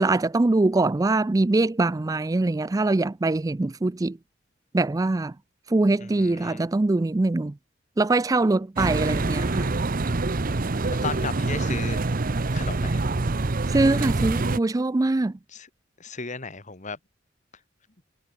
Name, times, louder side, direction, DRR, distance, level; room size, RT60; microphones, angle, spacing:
voice 1, 0.0-4.2 4.7-5.3 5.7-7.5 8.0-9.7 13.7-15.3, right 2 dB, 15° right, 0.4 m, -23 dB
voice 2, 6.0-6.7 11.0-12.0 12.5-13.1 15.5-15.7 16.0-17.0, left 4 dB, 40° left, 2.0 m, -35 dB
sound 1, 8.8-14.6, right 3 dB, 45° right, 0.8 m, -25 dB
head